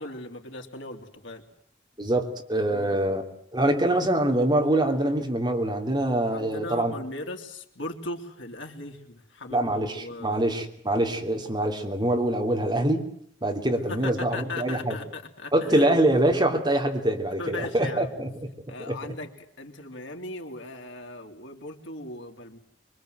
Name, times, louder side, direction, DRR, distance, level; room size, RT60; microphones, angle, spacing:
voice 1, 0.0-1.5 2.7-3.0 6.3-10.4 13.9-15.9 17.4-18.1 18.7-22.6, left 2 dB, 90° left, 3 dB, 3.3 m, -38 dB
voice 2, 2.0-3.2 3.5-6.9 9.5-13.1 13.4-15.0 15.5-18.3 18.9-19.0, right 1 dB, 25° right, 3 dB, 3.1 m, -24 dB
25.5 x 23.5 x 7.9 m, 0.65 s
head